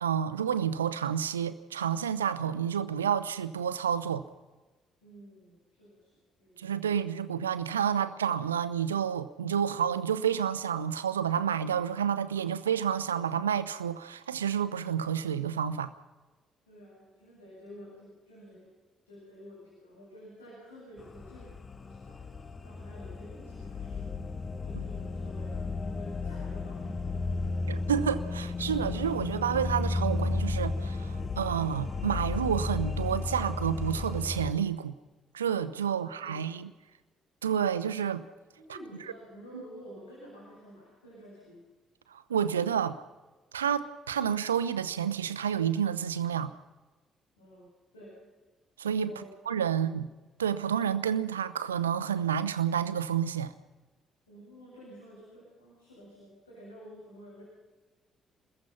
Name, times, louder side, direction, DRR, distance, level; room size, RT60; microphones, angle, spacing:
voice 1, 0.0-4.2 6.6-15.9 27.7-34.9 35.3-36.7 37.4-38.2 39.5-39.6 42.1-43.0 43.5-46.5 48.8-49.1 49.5-50.1 50.4-53.5, right 8 dB, 85° right, 0.9 m, -29 dB
voice 2, 5.0-6.9 16.7-18.7 19.1-27.7 36.0-36.7 38.5-41.6 47.4-48.2 49.0-49.9 54.3-57.4, equal, 85° left, 7.6 m, -51 dB
sound 1, 21.0-34.5, left 3 dB, 35° left, 1.1 m, -34 dB
28.5 x 21.0 x 5.8 m
figure-of-eight pair, 45°, 0 cm